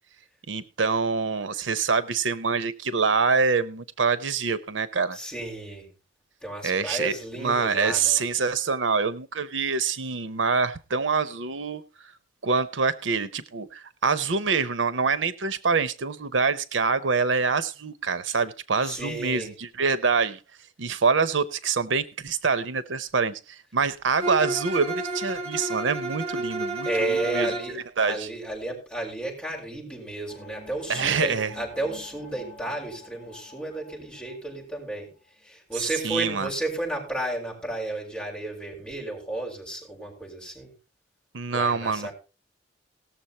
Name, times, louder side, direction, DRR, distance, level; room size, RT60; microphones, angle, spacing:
voice 1, 0.5-5.2 6.6-11.8 12.4-20.4 20.8-28.3 30.9-31.5 35.8-36.5 41.3-42.1, right 5 dB, 75° right, 0.7 m, -25 dB
voice 2, 5.1-5.9 6.4-8.2 18.8-19.5 26.8-35.1 35.4-40.7 41.5-42.1, right 2 dB, 5° left, 7.1 m, -32 dB
Bowed string instrument, 24.2-27.8, right 2 dB, 35° right, 3.1 m, -31 dB
sound 1, 30.3-34.8, left 2 dB, 10° right, 5.5 m, -47 dB
18.5 x 7.1 x 4.3 m
head